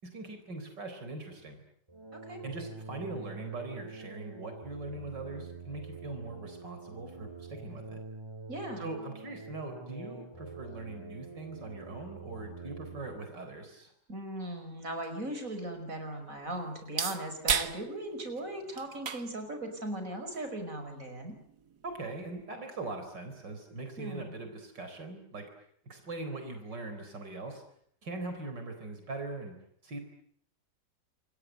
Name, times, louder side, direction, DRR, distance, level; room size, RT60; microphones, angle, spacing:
voice 1, 0.0-1.6 2.4-8.0 8.8-13.9 21.8-25.5 25.8-27.6 28.0-29.6 29.8-30.0, right 2 dB, 85° right, 6 dB, 4.8 m, -41 dB
sound 1, 1.9-13.2, right 3 dB, 15° right, 2.4 m, -46 dB
voice 2, 8.5-8.9 14.1-21.4 24.0-24.4, right 1 dB, 50° right, 6 dB, 5.8 m, -38 dB
sound 2, 14.5-22.5, right 7 dB, 65° right, 2.0 m, -39 dB
28.5 x 22.0 x 9.2 m, 0.66 s
omnidirectional pair, 1.9 m